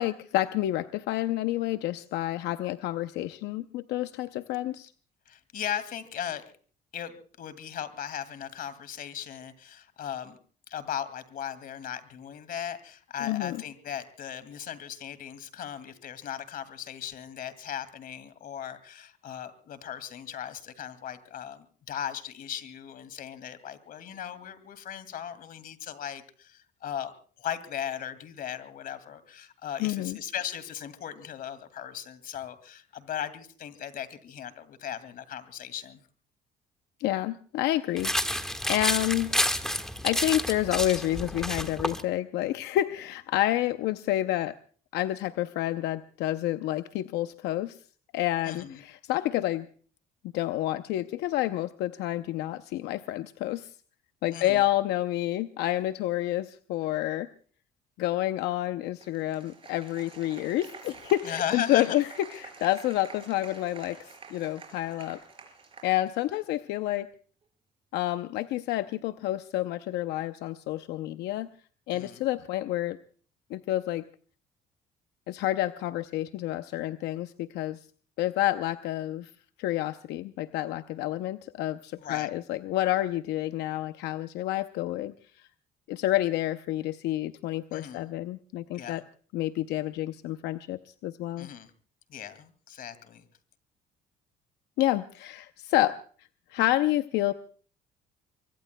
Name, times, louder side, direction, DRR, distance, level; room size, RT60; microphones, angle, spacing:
voice 1, 0.0-4.9 13.2-13.6 29.8-30.2 37.0-38.1 38.4-39.5 40.0-44.5 44.9-47.8 48.1-49.7 50.3-53.7 54.2-57.3 58.0-65.2 65.8-67.1 67.9-71.5 71.9-73.0 73.5-74.0 75.3-77.8 78.2-79.3 79.6-85.1 85.9-89.0 89.3-91.5 94.8-96.0 96.5-97.3, left 14 dB, 85° left, 11 dB, 0.6 m, -29 dB
voice 2, 5.3-6.4 6.9-10.4 10.7-27.1 27.4-36.0 48.4-48.8 54.3-54.6 61.2-62.0 71.9-72.2 82.0-82.3 87.7-88.0 88.7-89.0 91.4-91.7 92.1-93.2, left 9 dB, 60° left, 13 dB, 2.3 m, -37 dB
sound 1, 38.0-42.0, equal, 5° left, 1.5 m, -30 dB
Applause, 59.0-66.6, right 5 dB, 30° right, 5.1 m, -48 dB
25.5 x 23.5 x 2.2 m, 0.43 s
cardioid pair, 110°, 17 cm